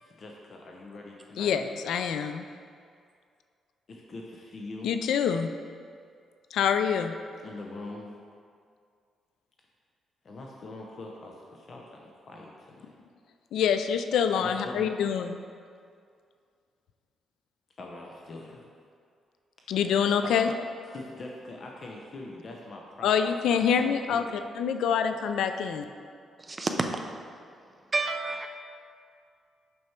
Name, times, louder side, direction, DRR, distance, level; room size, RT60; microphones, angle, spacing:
voice 1, 0.0-1.6 3.9-4.9 7.4-8.1 10.2-12.9 14.4-14.9 17.8-18.6 19.8-19.9 20.2-20.5 20.9-23.2 23.5-24.3, left 2 dB, 40° left, 0.7 m, -43 dB
voice 2, 1.4-2.4 4.8-5.5 6.5-7.1 13.5-15.4 19.7-20.5 23.0-25.8, left 7 dB, 85° left, 0.4 m, -26 dB
voice 3, 26.4-27.0 27.9-28.5, right 3 dB, 20° right, 0.5 m, -29 dB
6.2 x 6.0 x 4.4 m
cardioid pair, 150°, 0 cm